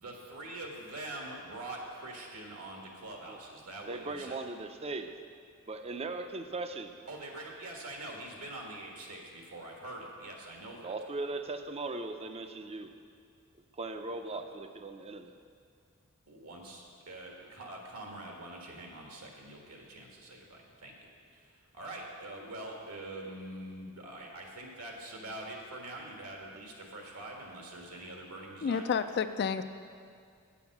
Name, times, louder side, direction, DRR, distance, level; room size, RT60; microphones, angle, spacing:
voice 1, 0.0-4.4 7.1-11.0 16.3-28.9, right 1 dB, 80° right, 0 dB, 1.6 m, -44 dB
voice 2, 3.9-5.1 5.7-6.9 10.8-12.9 13.8-15.3, right 3 dB, 25° right, 7 dB, 0.5 m, -38 dB
voice 3, 28.6-29.6, left 6 dB, 50° left, 10 dB, 0.4 m, -30 dB
8.6 x 7.2 x 5.9 m, 2.3 s
head